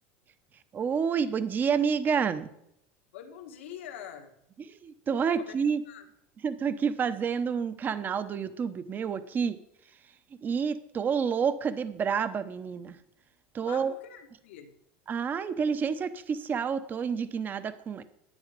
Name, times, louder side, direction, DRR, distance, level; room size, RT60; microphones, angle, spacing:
voice 1, 0.7-2.5 4.8-5.8 6.4-9.6 10.4-13.0 13.5-13.9 15.1-18.0, right 6 dB, 30° right, 13 dB, 0.9 m, -29 dB
voice 2, 3.1-4.4 5.3-5.6 5.9-6.1 13.6-14.7, left 9 dB, 90° left, 4 dB, 1.8 m, -45 dB
10.5 x 8.9 x 5.2 m, 0.78 s
supercardioid pair, 120°, 6 cm